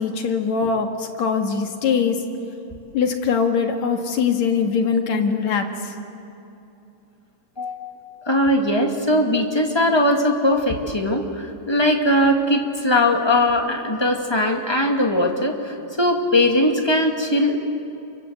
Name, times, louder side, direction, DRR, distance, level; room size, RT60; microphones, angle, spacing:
voice 1, 0.0-2.2 2.9-5.9, left 6 dB, 60° left, 4 dB, 2.9 m, -22 dB
voice 2, 7.6-8.0 8.2-17.5, left 1 dB, 15° left, 2 dB, 1.1 m, -20 dB
28.0 x 24.0 x 8.0 m, 2.8 s
omnidirectional pair, 3.9 m